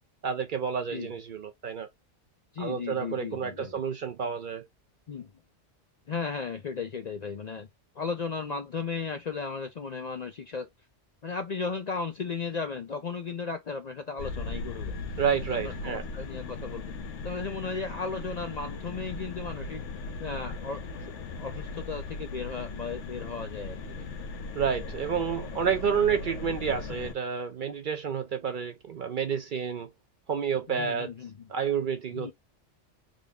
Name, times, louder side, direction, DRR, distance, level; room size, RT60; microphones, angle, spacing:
voice 1, 0.2-1.9 2.6-4.6 15.2-16.0 24.6-29.9 30.3-31.1 31.5-32.3, right 7 dB, 55° right, 0.6 m, -29 dB
voice 2, 2.5-3.8 5.1-5.3 6.1-7.7 7.9-10.7 11.2-15.0 15.5-17.0 17.2-19.9 20.2-21.1 21.4-24.1 26.9-27.1 30.7-31.5 32.1-32.3, left 5 dB, 50° left, 0.5 m, -35 dB
sound 1, 14.2-27.1, left 3 dB, 80° left, 1.0 m, -38 dB
3.7 x 2.1 x 3.5 m
omnidirectional pair, 1.2 m